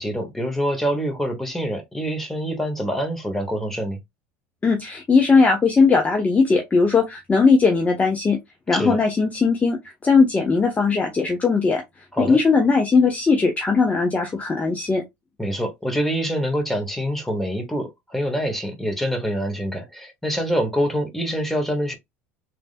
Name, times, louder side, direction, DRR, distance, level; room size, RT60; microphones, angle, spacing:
voice 1, 0.0-4.0 8.7-9.0 12.1-12.4 15.4-21.9, equal, 5° left, 1.3 m, -25 dB
voice 2, 4.6-8.4 8.7-11.8 12.2-15.0, left 4 dB, 20° left, 0.7 m, -18 dB
3.3 x 2.6 x 2.4 m
hypercardioid pair, 80°, 7 cm